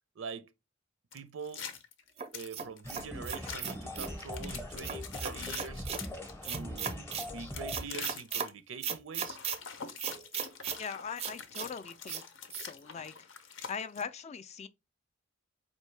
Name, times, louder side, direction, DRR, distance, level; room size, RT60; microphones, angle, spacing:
voice 1, 0.2-0.5 1.1-1.6 2.3-5.9 6.4-9.4, right 5 dB, 85° right, 0.5 m, -44 dB
sound 1, 1.1-2.9 3.3-3.6 4.1-6.3 7.1-8.5 9.1-14.0, left 6 dB, 75° left, 0.6 m, -45 dB
sound 2, 2.2-4.2 4.8-6.0 6.4-7.3 7.7-8.5 8.8-9.6 10.0-10.8 11.2-11.7 12.1-12.2 12.5-12.7, right 7 dB, 30° right, 0.4 m, -37 dB
sound 3, 2.8-7.9, left 1 dB, 10° left, 0.7 m, -41 dB
voice 2, 10.8-12.2 12.5-14.7, left 6 dB, 35° left, 0.3 m, -41 dB
4.5 x 2.7 x 3.2 m
head